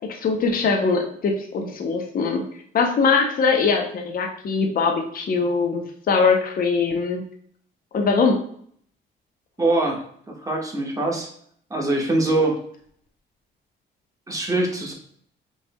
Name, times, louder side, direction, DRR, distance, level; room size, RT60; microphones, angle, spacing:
voice 1, 0.0-2.4 2.7-7.2 7.9-8.4, left 4 dB, 45° left, 2 dB, 0.7 m, -22 dB
voice 2, 9.6-10.0 10.4-11.3 11.7-12.6 14.3-14.9, right 2 dB, 15° right, 0 dB, 1.2 m, -23 dB
5.2 x 3.2 x 2.2 m, 0.63 s
cardioid pair, 90°, 20 cm